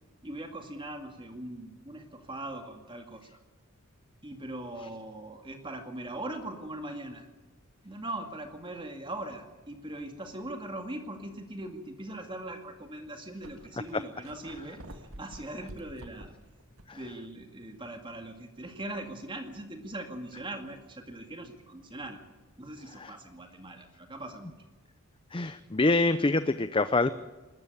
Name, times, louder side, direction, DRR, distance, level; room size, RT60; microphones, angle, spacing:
voice 1, 0.2-3.4 4.2-7.3 7.8-16.3 16.9-22.2 22.6-24.5, right 1 dB, 25° right, 5 dB, 2.1 m, -40 dB
sound 1, 10.9-11.1 11.8-11.9 12.8-12.9 13.1-17.1 17.4-17.5 21.1-21.2, right 1 dB, 70° right, 2.1 m, -49 dB
voice 2, 25.3-27.1, left 2 dB, 25° left, 12 dB, 0.6 m, -26 dB
21.0 x 13.5 x 9.6 m, 1.2 s
head